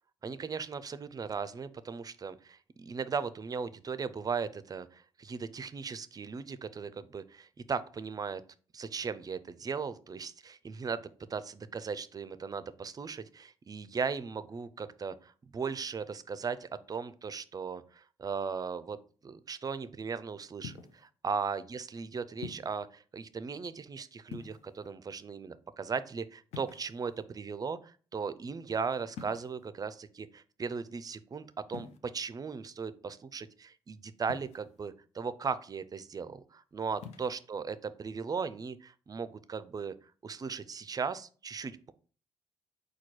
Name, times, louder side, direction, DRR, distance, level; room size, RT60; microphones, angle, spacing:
voice 1, 0.2-8.4 8.7-19.0 19.2-39.9 40.2-41.9, right 5 dB, 35° right, 14 dB, 0.4 m, -37 dB
sound 1, 20.6-21.1 22.4-22.8 24.2-24.9 26.5-27.2 29.1-29.7 31.7-32.0 34.3-34.8 36.9-37.3, left 7 dB, 80° left, 0.5 m, -46 dB
4.3 x 2.3 x 4.6 m, 0.40 s
supercardioid pair, 55°, 11 cm